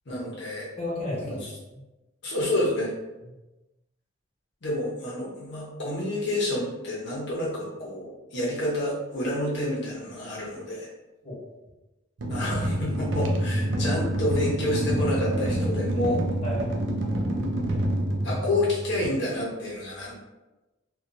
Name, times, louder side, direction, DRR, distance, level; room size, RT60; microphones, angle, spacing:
voice 1, 0.1-0.7 1.2-1.5 2.2-2.9 4.6-10.9 12.3-16.2 18.2-20.1, left 1 dB, 60° left, -5 dB, 0.7 m, -29 dB
voice 2, 0.8-1.4 1.7-1.8 11.2-11.4 16.4-16.9, left 1 dB, 35° left, -7 dB, 1.1 m, -32 dB
sound 1, 12.2-19.1, right 1 dB, 65° right, 0.4 m, -27 dB
2.7 x 2.2 x 2.5 m, 1.1 s
head